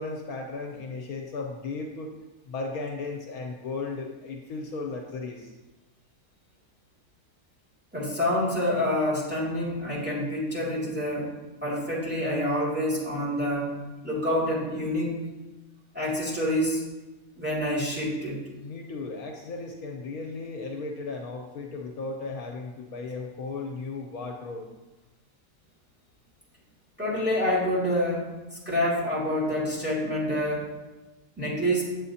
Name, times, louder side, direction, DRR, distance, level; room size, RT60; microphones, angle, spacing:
voice 1, 0.0-2.1 2.4-5.5 18.6-24.6, left 3 dB, 70° left, 2 dB, 1.2 m, -35 dB
voice 2, 7.9-11.3 11.6-13.7 14.0-15.2 15.9-16.8 17.4-18.4 27.0-28.3 28.7-30.7 31.4-31.8, left 1 dB, 5° right, -5 dB, 2.2 m, -27 dB
8.6 x 7.7 x 2.8 m, 1.1 s
omnidirectional pair, 1.7 m